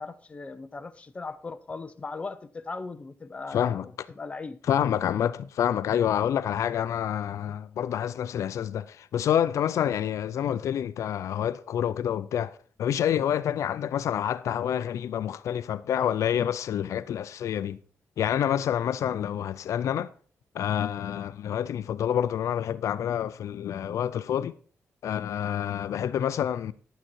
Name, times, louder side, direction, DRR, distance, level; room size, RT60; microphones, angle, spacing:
voice 1, 0.0-4.6, left 3 dB, 25° left, 0.7 m, -39 dB
voice 2, 3.5-3.9 4.7-17.8 18.2-20.1 20.5-24.6 25.0-26.7, left 9 dB, 75° left, 0.4 m, -28 dB
11.0 x 9.0 x 4.5 m
wide cardioid pair, 150°, 5 cm